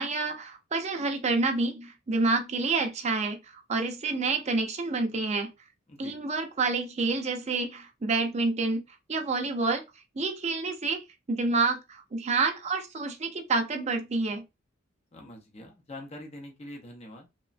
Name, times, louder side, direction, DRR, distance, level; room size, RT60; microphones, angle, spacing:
voice 1, 0.0-5.5 6.0-8.8 9.1-9.8 10.2-14.4, right 3 dB, 35° right, 0.5 m, -28 dB
voice 2, 15.1-17.3, left 1 dB, 35° left, 0.6 m, -44 dB
3.0 x 2.2 x 2.4 m
head